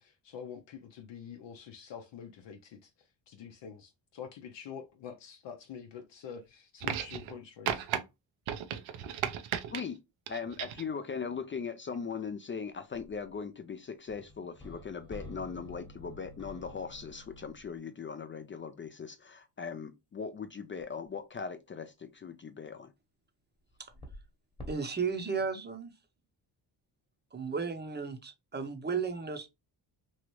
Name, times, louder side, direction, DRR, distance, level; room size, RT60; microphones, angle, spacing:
voice 1, 0.0-2.9 3.3-7.9, left 7 dB, 65° left, 0.7 m, -46 dB
sound 1, 6.8-7.4 7.7-8.0 8.5-9.8 10.3-10.9 11.9-12.0, right 10 dB, 90° right, 0.6 m, -35 dB
voice 2, 10.3-22.9, left 6 dB, 30° left, 0.4 m, -39 dB
sound 2, 12.9-13.4 14.1-17.8 20.8-20.9 23.7-24.3 24.6-24.8, left 1 dB, 10° left, 1.1 m, -48 dB
voice 3, 24.7-25.9 27.3-29.5, right 5 dB, 20° right, 0.7 m, -34 dB
3.1 x 2.5 x 3.0 m
cardioid pair, 80°, 46 cm